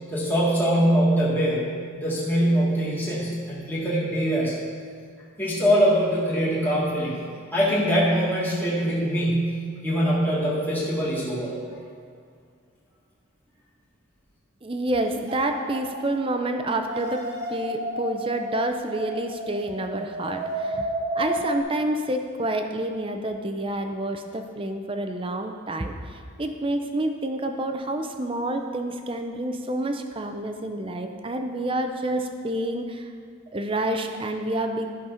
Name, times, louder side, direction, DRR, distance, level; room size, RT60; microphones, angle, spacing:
voice 1, 0.1-1.6 1.9-4.5 5.4-7.2 7.5-11.5, equal, 10° left, -7 dB, 1.6 m, -23 dB
voice 2, 14.6-33.1 33.5-34.9, right 1 dB, 25° right, 5 dB, 0.6 m, -28 dB
sound 1, 15.3-16.4 16.7-21.6, right 1 dB, 50° right, 1.5 m, -32 dB
12.0 x 5.2 x 5.7 m, 2.2 s
head